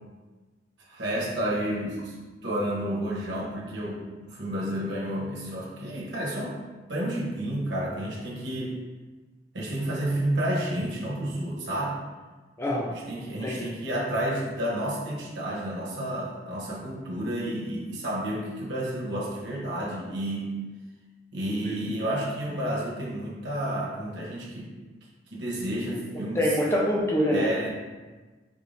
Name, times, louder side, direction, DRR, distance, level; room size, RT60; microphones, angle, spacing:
voice 1, 0.9-2.1 2.4-6.5 6.9-8.7 9.5-12.0 12.9-20.6 21.3-24.7 25.3-26.5 27.3-27.7, right 1 dB, 90° right, -5 dB, 1.1 m, -30 dB
voice 2, 12.6-12.9 13.4-13.7 21.6-21.7 26.1-27.7, equal, 15° left, -3 dB, 0.5 m, -25 dB
4.3 x 3.3 x 2.7 m, 1.3 s
head